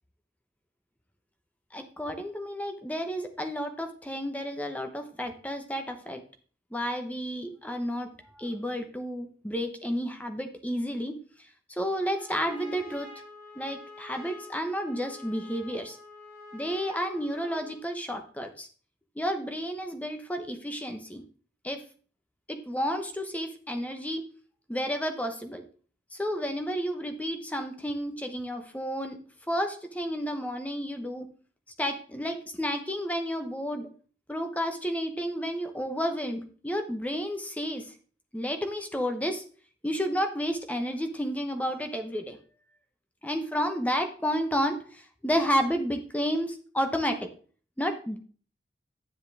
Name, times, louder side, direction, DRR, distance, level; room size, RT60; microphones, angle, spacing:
voice 1, 1.7-6.2 6.7-11.2 11.7-13.1 13.5-16.0 16.5-18.7 19.2-21.2 21.6-21.8 22.5-24.2 24.7-25.6 26.1-29.2 29.5-31.3 31.8-33.9 34.3-37.9 38.3-39.4 39.8-42.4 43.2-47.3 47.8-48.2, equal, 10° left, 6 dB, 1.1 m, -31 dB
Trumpet, 11.9-17.9, left 2 dB, 15° right, 3.5 m, -47 dB
10.0 x 7.3 x 3.5 m, 0.42 s
head